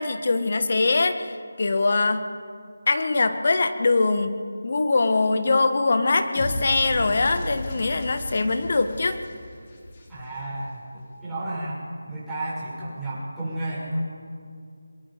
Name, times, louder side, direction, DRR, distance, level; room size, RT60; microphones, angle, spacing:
voice 1, 0.0-2.3 2.9-4.4 4.6-9.2, left 3 dB, 50° left, 9 dB, 1.5 m, -22 dB
sound 1, 6.3-10.6, left 1 dB, 35° left, 4.2 m, -35 dB
voice 2, 10.1-14.0, right 1 dB, 5° right, -12 dB, 7.0 m, -32 dB
26.5 x 22.0 x 5.2 m, 2.2 s
figure-of-eight pair, 165°, 0 cm